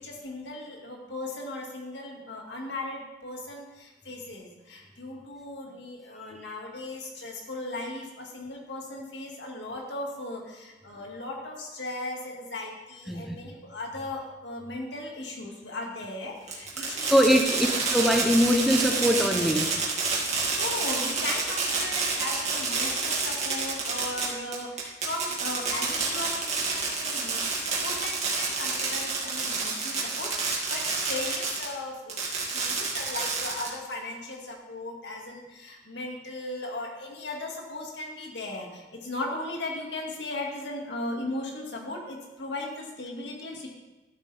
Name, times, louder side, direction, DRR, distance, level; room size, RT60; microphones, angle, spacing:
voice 1, 0.0-17.5 20.2-32.2 32.5-43.7, left 2 dB, 70° left, 0 dB, 2.1 m, -37 dB
voice 2, 13.1-13.4 16.8-19.7, equal, ahead, 2 dB, 0.8 m, -23 dB
Fireworks, 16.5-31.7 32.1-33.9, right 4 dB, 40° right, 2.4 m, -28 dB
12.5 x 8.4 x 3.5 m, 1.1 s
head